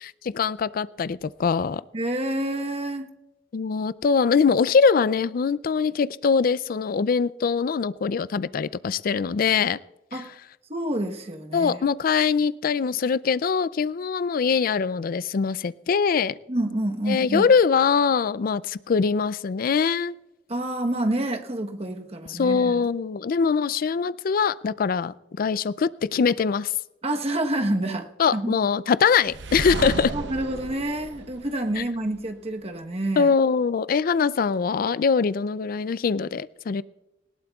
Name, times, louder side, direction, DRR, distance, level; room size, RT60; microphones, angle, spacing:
voice 1, 0.0-1.8 3.5-9.8 10.1-10.2 11.5-16.4 17.1-20.1 22.3-26.7 28.2-30.1 31.8-31.9 33.2-36.8, left 5 dB, 50° left, 18 dB, 0.4 m, -23 dB
voice 2, 1.9-3.1 10.1-10.3 10.7-11.8 16.5-17.5 20.5-22.9 27.0-28.6 30.1-33.3, right 1 dB, 35° right, 5 dB, 1.1 m, -28 dB
sound 1, 29.3-32.2, right 3 dB, 75° right, 0.7 m, -33 dB
19.5 x 17.5 x 2.4 m, 0.95 s
head